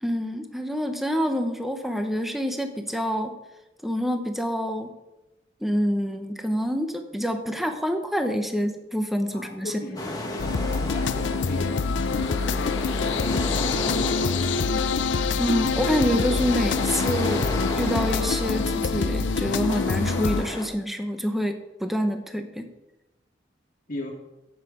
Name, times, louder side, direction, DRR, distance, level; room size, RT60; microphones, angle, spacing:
voice 1, 0.0-3.3 3.8-4.9 5.6-9.7 15.4-22.7, equal, ahead, 6 dB, 0.9 m, -27 dB
voice 2, 9.3-14.6 23.9-24.1, left 2 dB, 50° left, 0 dB, 1.8 m, -37 dB
sound 1, 10.0-20.7, left 1 dB, 20° left, 1.6 m, -34 dB
sound 2, 10.4-20.4, left 4 dB, 80° left, 0.5 m, -25 dB
11.5 x 8.5 x 5.0 m, 0.97 s
head